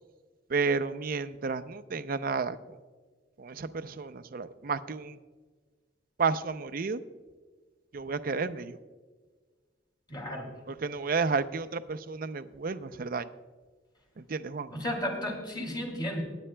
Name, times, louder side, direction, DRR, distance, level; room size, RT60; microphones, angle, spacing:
voice 1, 0.5-2.8 3.4-5.2 6.2-7.0 7.9-8.8 10.7-13.3 14.2-14.7, right 4 dB, 55° right, 12 dB, 0.5 m, -31 dB
voice 2, 10.1-10.5 14.7-16.2, left 1 dB, 25° left, 2 dB, 2.5 m, -33 dB
19.5 x 9.7 x 2.2 m, 1.4 s
head